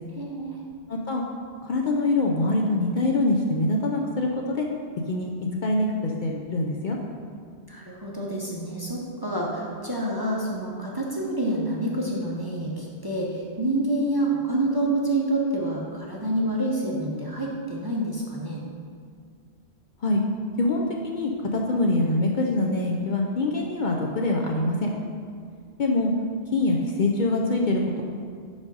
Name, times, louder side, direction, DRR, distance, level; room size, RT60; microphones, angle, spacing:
voice 1, 0.1-0.6 7.7-18.6, right 1 dB, 25° right, -3 dB, 0.6 m, -27 dB
voice 2, 0.9-1.2 1.6-4.7 5.1-5.3 5.6-7.0 20.0-20.2 20.6-24.9 25.8-26.1 26.5-28.0, left 2 dB, 55° left, 0 dB, 0.6 m, -24 dB
5.2 x 4.9 x 5.3 m, 2.2 s
omnidirectional pair, 1.1 m